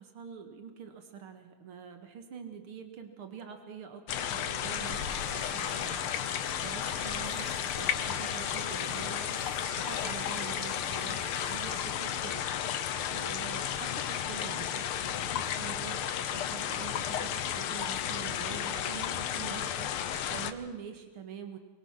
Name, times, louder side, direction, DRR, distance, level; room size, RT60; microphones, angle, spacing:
voice 1, 0.0-6.0 6.6-7.4 7.8-9.4 9.8-12.4 13.1-20.0 20.3-21.6, right 7 dB, 90° right, 6 dB, 2.6 m, -45 dB
sound 1, 4.1-20.5, left 9 dB, 85° left, 1.9 m, -33 dB
sound 2, 4.8-11.8, right 6 dB, 45° right, 2.0 m, -48 dB
25.5 x 23.0 x 5.9 m, 1.3 s
omnidirectional pair, 2.3 m